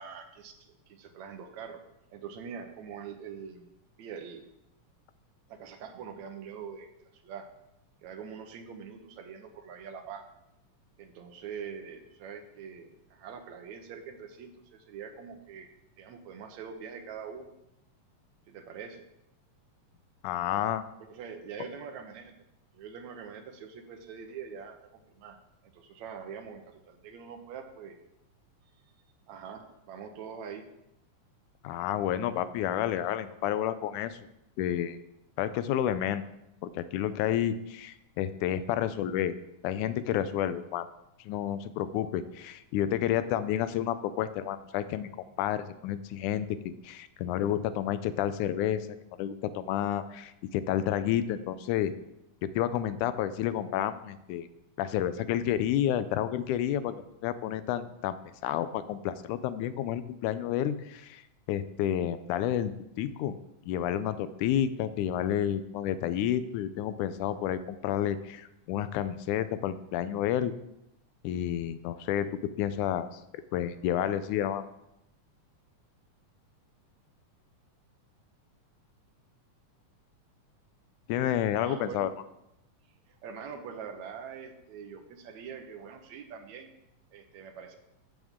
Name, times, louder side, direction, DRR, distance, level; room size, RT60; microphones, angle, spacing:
voice 1, 0.0-1.8 2.1-3.7 4.0-4.4 5.5-7.5 8.0-10.2 11.0-15.7 16.0-17.5 18.5-19.0 21.0-22.4 22.7-24.8 25.1-25.4 25.7-28.0 29.3-30.7 81.6-82.1 83.1-86.7 87.1-87.8, right 6 dB, 75° right, 6 dB, 2.1 m, -44 dB
voice 2, 20.2-20.9 31.6-34.3 34.6-35.0 35.4-36.2 36.6-39.3 39.6-40.9 41.3-45.1 45.4-48.9 49.2-51.9 52.4-54.5 54.8-58.2 58.4-61.2 61.5-63.3 63.7-70.5 71.2-73.2 73.5-74.6 81.1-82.1, left 11 dB, 85° left, 13 dB, 2.1 m, -30 dB
13.5 x 7.3 x 3.7 m, 0.85 s
omnidirectional pair, 3.5 m